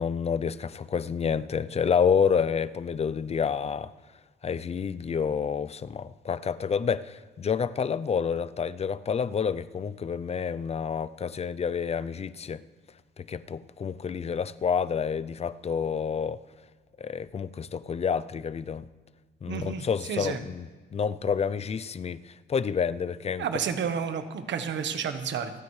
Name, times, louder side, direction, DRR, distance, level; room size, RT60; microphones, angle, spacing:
voice 1, 0.0-3.9 4.4-12.6 13.2-16.4 17.0-18.9 19.4-23.5, left 6 dB, 30° left, 0.5 m, -29 dB
voice 2, 19.5-19.8 20.1-20.4 23.4-25.5, right 7 dB, 65° right, 1.3 m, -30 dB
28.0 x 9.4 x 3.3 m
cardioid pair, 90°, 20 cm